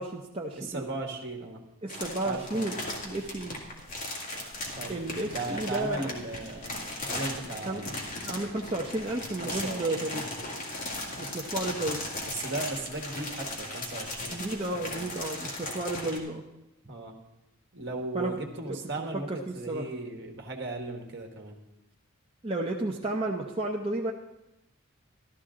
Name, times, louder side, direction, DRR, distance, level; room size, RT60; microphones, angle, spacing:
voice 1, 0.0-0.9 1.8-2.7 3.0-3.6 4.9-6.1 7.7-7.9 8.3-10.2 11.2-12.1 14.3-16.4 18.1-18.3 18.7-19.9 22.4-24.1, right 2 dB, 25° right, -1 dB, 0.7 m, -32 dB
voice 2, 0.6-1.6 2.2-2.7 4.8-8.0 9.4-10.3 12.3-14.4 14.7-15.1 16.9-17.2 17.7-21.6, right 2 dB, 55° right, 2 dB, 1.5 m, -37 dB
sound 1, 1.9-16.2, left 1 dB, 40° left, 2.0 m, -37 dB
13.0 x 13.0 x 3.8 m, 0.91 s
head